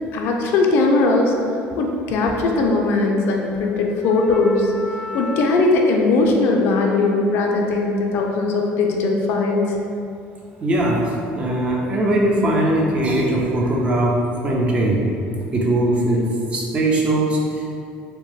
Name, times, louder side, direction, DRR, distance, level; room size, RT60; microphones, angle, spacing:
voice 1, 0.1-1.4 1.8-4.7 5.1-9.8, left 3 dB, 60° left, 1 dB, 0.4 m, -19 dB
voice 2, 4.8-5.5 10.6-15.1 15.5-17.8, right 1 dB, 25° right, -2 dB, 0.4 m, -21 dB
2.8 x 2.1 x 3.0 m, 2.5 s
cardioid pair, 115°, 4 cm